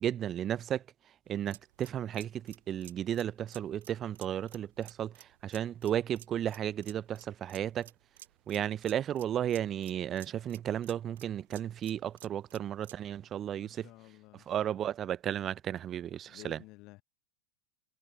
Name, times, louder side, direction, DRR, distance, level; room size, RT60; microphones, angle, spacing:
voice 1, 0.0-0.8 1.3-7.9 8.5-13.9 14.3-16.6, right 10 dB, 30° right, 0.7 m, -34 dB
sound 1, 1.3-13.1, right 12 dB, 60° right, 5.9 m, -55 dB
voice 2, 13.6-14.5 16.3-17.0, left 22 dB, 40° left, 1.1 m, -53 dB
figure-of-eight pair, 90°, 0 cm